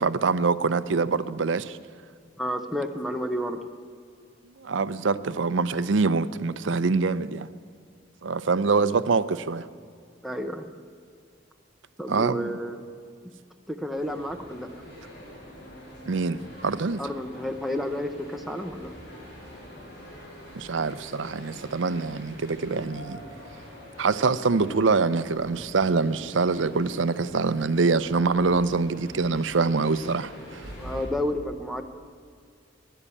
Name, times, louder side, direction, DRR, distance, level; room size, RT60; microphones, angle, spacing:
voice 1, 0.0-1.8 4.6-7.5 8.2-9.7 12.1-12.5 16.1-17.0 20.5-23.2 24.0-30.6, right 4 dB, 85° right, 0.6 m, -25 dB
voice 2, 2.4-3.7 10.2-10.7 12.0-12.8 13.7-14.7 17.0-18.9 30.8-31.8, equal, ahead, 0.8 m, -31 dB
sound 1, 13.9-31.1, equal, 60° left, 4.0 m, -44 dB
15.5 x 11.0 x 8.5 m
head